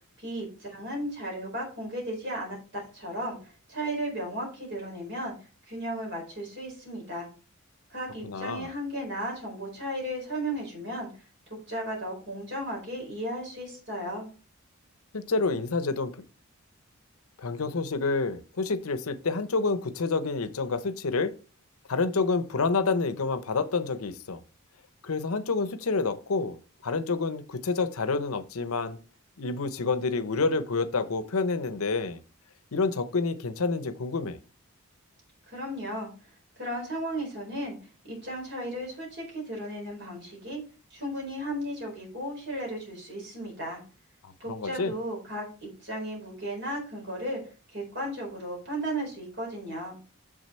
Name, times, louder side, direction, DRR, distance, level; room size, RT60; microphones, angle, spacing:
voice 1, 0.2-5.3 5.7-7.3 7.9-11.1 11.7-14.3 35.5-36.1 36.6-37.8 38.0-40.6 40.9-43.8 44.4-47.4 47.7-50.0, right 1 dB, 50° right, 4.5 m, -35 dB
voice 2, 8.2-8.7 15.1-16.1 17.4-21.3 21.9-24.4 25.0-29.0 29.4-32.2 32.7-34.4 44.2-44.9, left 4 dB, 80° left, 0.7 m, -28 dB
6.8 x 6.4 x 4.3 m
head